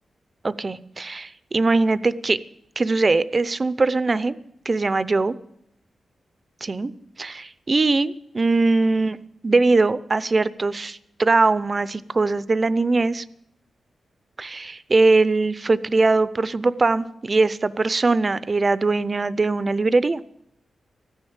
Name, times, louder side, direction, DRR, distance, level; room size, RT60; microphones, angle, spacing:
voice 1, 0.4-2.4 2.8-4.3 4.7-5.3 6.6-6.9 7.2-13.2 14.4-20.2, right 3 dB, 35° right, 17 dB, 0.6 m, -21 dB
14.0 x 10.0 x 7.2 m, 0.80 s
cardioid pair, 70°, 0 cm